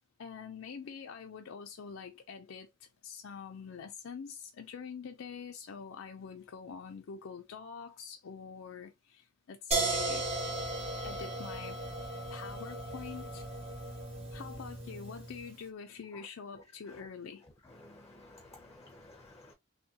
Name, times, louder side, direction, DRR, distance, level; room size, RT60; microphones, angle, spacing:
voice 1, 0.2-10.3 11.0-11.8 12.3-13.5 14.3-17.5, left 6 dB, 85° left, 0.5 m, -45 dB
sound 1, 9.7-15.5, right 2 dB, 30° right, 1.1 m, -36 dB
voice 2, 17.8-19.5, left 2 dB, 15° left, 0.5 m, -54 dB
3.5 x 2.2 x 2.7 m
head